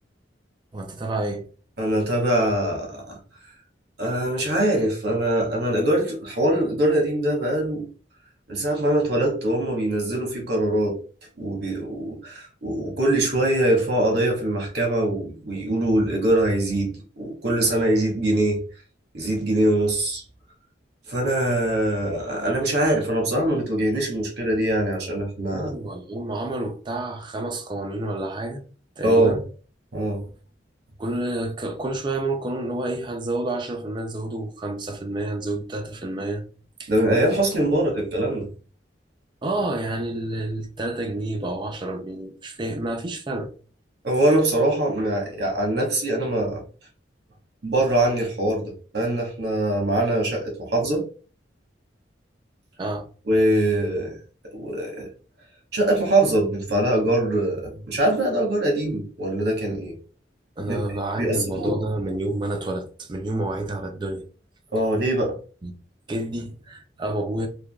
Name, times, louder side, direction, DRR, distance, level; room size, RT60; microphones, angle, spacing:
voice 1, 0.7-1.4 25.5-28.6 29.0-29.4 31.0-36.5 36.8-36.9 37.6-37.7 39.4-43.5 52.8-53.1 60.6-64.2 65.6-65.7 66.1-67.5, right 2 dB, 25° right, 0.4 m, -29 dB
voice 2, 1.8-3.2 4.0-7.8 8.5-11.0 11.4-18.6 19.1-20.2 21.1-25.7 29.0-29.4 29.9-30.3 36.9-38.5 44.0-46.6 47.6-51.0 53.3-54.2 54.4-55.1 55.7-59.9 60.6-60.8 61.2-61.7 64.7-65.4, right 1 dB, 60° right, 1.0 m, -23 dB
3.2 x 2.3 x 2.2 m
head